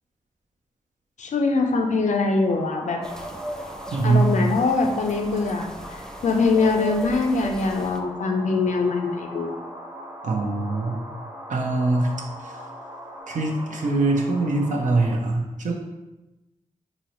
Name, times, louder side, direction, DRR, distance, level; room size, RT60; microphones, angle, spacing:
voice 1, 1.2-3.0 4.0-9.6, left 3 dB, 65° left, 3 dB, 0.5 m, -23 dB
sound 1, 2.5-15.2, equal, 15° right, 0.7 m, -40 dB
sound 2, 3.0-8.0, equal, 5° left, 0.3 m, -37 dB
voice 2, 3.9-4.3 10.2-11.0 11.5-12.1 12.4-12.5 13.3-15.7, right 3 dB, 70° right, 0 dB, 0.5 m, -23 dB
3.8 x 2.1 x 2.9 m, 1.0 s
cardioid pair, 60°, 13 cm